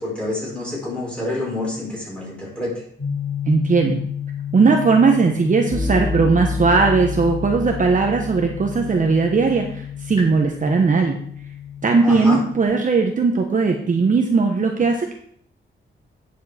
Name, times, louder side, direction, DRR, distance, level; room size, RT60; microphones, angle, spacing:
voice 1, 0.0-2.8 12.0-12.4, left 2 dB, 5° left, -5 dB, 4.7 m, -27 dB
sound 1, 3.0-12.7, left 6 dB, 35° left, 4.8 m, -29 dB
voice 2, 3.5-4.0 4.5-11.2 11.8-15.1, right 4 dB, 40° right, 3 dB, 1.0 m, -18 dB
9.1 x 7.4 x 4.3 m, 0.63 s
wide cardioid pair, 120°, 20 cm